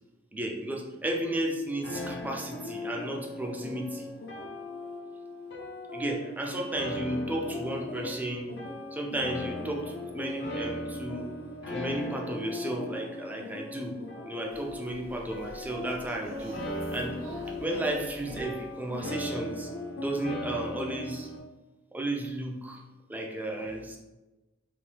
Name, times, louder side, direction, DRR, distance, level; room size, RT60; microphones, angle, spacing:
voice 1, 0.3-4.1 5.9-8.5 8.9-11.3 11.7-14.0 14.3-16.6 16.9-17.2 17.5-19.7 20.0-21.3 21.9-22.8 23.1-24.0, right 1 dB, 10° right, 1 dB, 0.3 m, -33 dB
sound 1, 1.8-21.4, left 1 dB, 60° left, 0.5 m, -38 dB
sound 2, 14.5-19.7, right 1 dB, 70° right, 0.8 m, -48 dB
2.9 x 2.2 x 3.2 m, 1.1 s
head